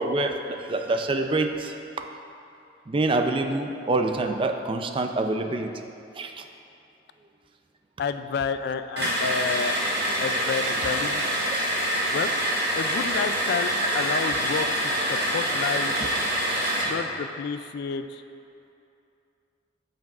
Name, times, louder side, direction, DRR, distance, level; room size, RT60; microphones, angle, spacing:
voice 1, 0.0-1.8 2.9-5.7 6.1-6.4 13.7-14.0 16.0-16.1, right 2 dB, 30° right, 5 dB, 0.4 m, -26 dB
voice 2, 8.0-9.8 10.2-11.5 12.1-12.3 12.8-15.9 16.8-18.2, left 6 dB, 60° left, 10 dB, 0.3 m, -30 dB
sound 1, 9.0-17.0, equal, 65° right, 1.8 m, -26 dB
13.5 x 5.9 x 2.4 m, 2.7 s
head